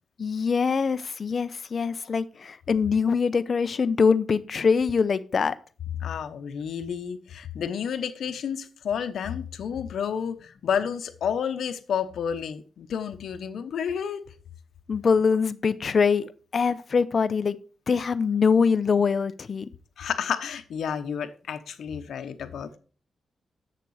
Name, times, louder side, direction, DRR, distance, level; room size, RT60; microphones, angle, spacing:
voice 1, 0.2-5.5 14.9-17.6 17.9-19.7, left 5 dB, 50° left, 0.6 m, -23 dB
voice 2, 6.0-14.2 20.0-22.8, left 7 dB, 80° left, 0.9 m, -30 dB
7.9 x 6.7 x 4.8 m
cardioid pair, 105°, 0 cm